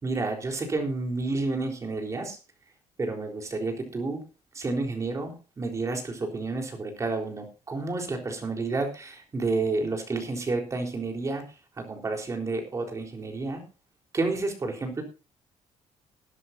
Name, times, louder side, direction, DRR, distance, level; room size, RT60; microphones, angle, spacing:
voice 1, 0.0-2.4 3.0-4.2 4.6-11.4 11.8-13.6 14.1-15.0, right 3 dB, 25° right, 3 dB, 3.9 m, -30 dB
20.5 x 11.0 x 2.7 m, 0.32 s
cardioid pair, 145°, 12 cm